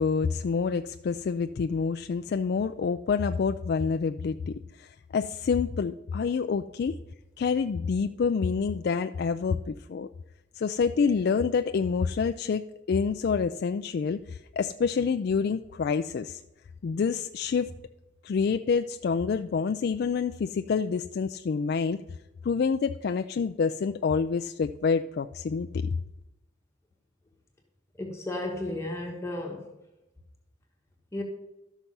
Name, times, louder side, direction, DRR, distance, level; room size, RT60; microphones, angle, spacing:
voice 1, 0.0-7.0 7.4-10.1 10.5-16.4 16.8-17.7 18.2-22.0 22.4-25.9, left 5 dB, 55° left, 7 dB, 0.3 m, -27 dB
voice 2, 28.0-29.7 31.1-31.2, left 1 dB, 15° left, 0 dB, 1.3 m, -33 dB
12.5 x 6.1 x 5.4 m, 0.95 s
head